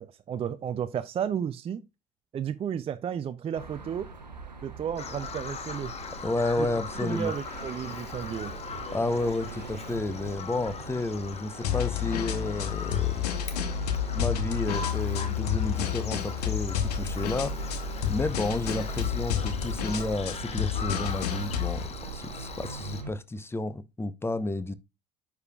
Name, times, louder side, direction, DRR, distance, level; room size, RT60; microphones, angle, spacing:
voice 1, 0.0-1.9 2.3-4.1 4.6-5.9 6.6-6.7 7.0-8.5, right 8 dB, 25° right, 0.5 m, -33 dB
sound 1, 3.5-23.1, right 5 dB, 90° right, 0.8 m, -43 dB
Bird vocalization bird call bird song, 5.0-23.0, left 5 dB, 30° left, 1.1 m, -41 dB
voice 2, 6.2-7.3 8.9-13.3 14.1-21.9 22.1-24.7, left 2 dB, 10° left, 0.7 m, -31 dB
sound 2, 11.6-21.9, left 8 dB, 70° left, 0.9 m, -30 dB
9.5 x 4.8 x 2.3 m
figure-of-eight pair, 60°, 21 cm